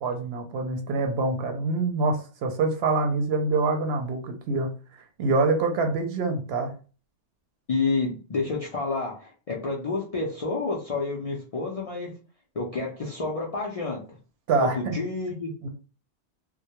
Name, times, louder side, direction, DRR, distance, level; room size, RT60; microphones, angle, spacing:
voice 1, 0.0-6.7 14.5-15.0 15.6-15.7, right 3 dB, 70° right, 4 dB, 0.8 m, -26 dB
voice 2, 7.7-12.1 12.5-14.2 14.6-15.5, left 3 dB, 55° left, -3 dB, 0.4 m, -29 dB
2.2 x 2.1 x 2.8 m, 0.36 s
omnidirectional pair, 1.2 m